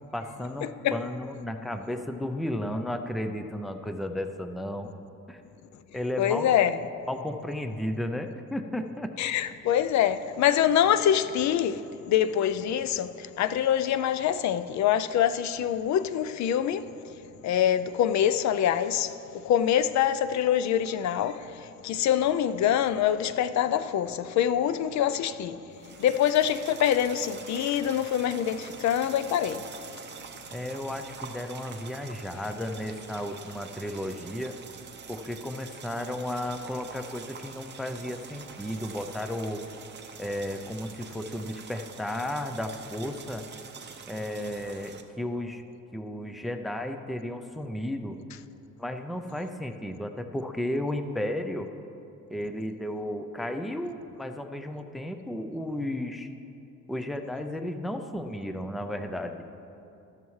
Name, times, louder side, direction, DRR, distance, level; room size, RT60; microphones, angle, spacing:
voice 1, 0.1-4.9 5.3-5.4 5.9-6.5 7.1-9.1 30.5-34.6 35.1-39.6 40.2-43.4 44.1-45.6 45.9-48.2 48.8-51.7 52.3-56.3 56.9-59.4, left 1 dB, ahead, 0.4 m, -33 dB
voice 2, 6.2-6.8 9.2-11.8 12.1-16.9 17.4-25.6 26.0-29.7, left 10 dB, 65° left, 0.5 m, -25 dB
sound 1, 25.7-45.0, right 6 dB, 35° right, 0.7 m, -45 dB
13.5 x 12.5 x 3.2 m
cardioid pair, 150°, 30 cm